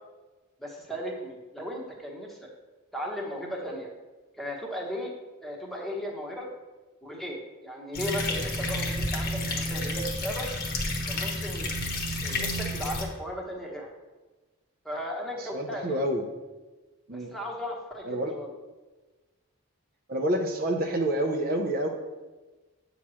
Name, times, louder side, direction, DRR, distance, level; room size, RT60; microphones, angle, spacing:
voice 1, 0.6-2.5 2.9-3.9 4.4-5.1 5.4-6.5 7.0-10.5 11.1-11.7 12.2-13.9 14.8-16.0 17.1-18.5, equal, ahead, -1 dB, 1.0 m, -36 dB
sound 1, 7.9-13.0, left 1 dB, 50° left, 1.1 m, -30 dB
voice 2, 15.4-16.3 17.1-17.3 18.0-18.3 20.1-21.9, right 1 dB, 45° right, 2 dB, 0.7 m, -28 dB
8.4 x 3.0 x 6.2 m, 1.2 s
head